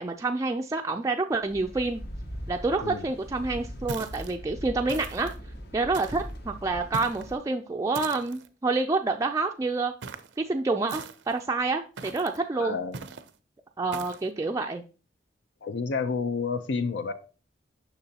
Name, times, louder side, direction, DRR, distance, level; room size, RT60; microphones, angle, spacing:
voice 1, 0.0-2.0 2.5-5.3 5.7-9.9 10.4-12.8 13.8-14.8, right 3 dB, 20° right, 0.3 m, -28 dB
sound 1, 1.5-7.4, equal, 60° left, 1.0 m, -40 dB
voice 2, 2.8-3.1 12.5-13.0 15.6-17.1, left 4 dB, 75° left, 0.5 m, -30 dB
sound 2, 3.9-4.4 4.9-5.4 5.9-6.3 6.9-7.3 7.9-8.5 10.0-10.4 10.9-11.4 12.0-12.4 12.9-13.3 13.9-14.3, right 5 dB, 85° right, 0.5 m, -40 dB
6.8 x 6.0 x 2.8 m
head